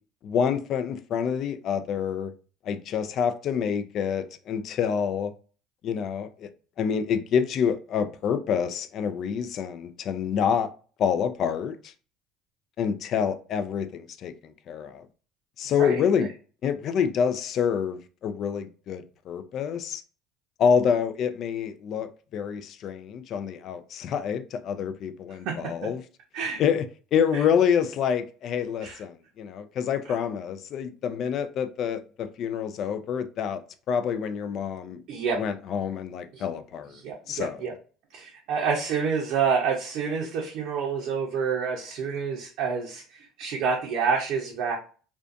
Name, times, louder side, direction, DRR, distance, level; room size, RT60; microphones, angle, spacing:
voice 1, 0.2-2.3 2.6-5.3 5.8-6.5 6.8-10.7 11.0-11.9 12.8-14.3 14.7-15.0 15.6-16.3 16.6-20.0 20.6-26.0 26.6-26.9 27.1-33.6 33.9-35.0 35.3-37.0 37.3-37.6, left 7 dB, 55° left, 0.4 m, -27 dB
voice 2, 15.8-16.3 25.5-25.7 26.3-26.6 27.3-27.4 28.8-29.0 35.1-35.4 36.3-36.4 37.0-37.7 38.1-44.8, right 6 dB, 70° right, 0.6 m, -28 dB
2.5 x 2.2 x 2.5 m
supercardioid pair, 90°, 0 cm